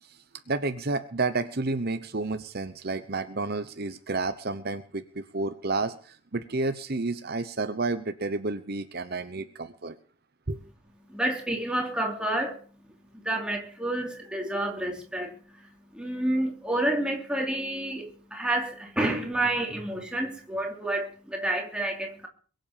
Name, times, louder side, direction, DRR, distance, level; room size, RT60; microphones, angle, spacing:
voice 1, 0.0-9.9 10.5-10.6, right 3 dB, 45° right, 0.9 m, -31 dB
voice 2, 11.1-12.7 13.2-22.3, right 1 dB, 5° right, 2.9 m, -29 dB
22.5 x 7.9 x 7.4 m
head